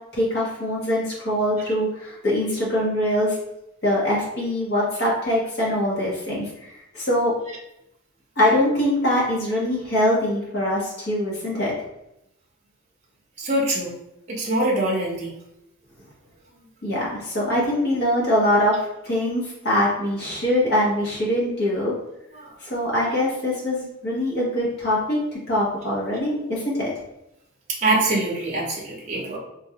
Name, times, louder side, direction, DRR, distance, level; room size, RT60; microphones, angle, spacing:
voice 1, 0.1-3.4 3.8-7.3 8.4-11.7 16.8-21.9 22.6-26.9, left 1 dB, 50° left, -5 dB, 1.3 m, -23 dB
voice 2, 13.4-13.9 14.3-15.3 27.8-29.4, right 2 dB, 35° right, -3 dB, 0.7 m, -23 dB
3.7 x 2.5 x 2.8 m, 0.85 s
head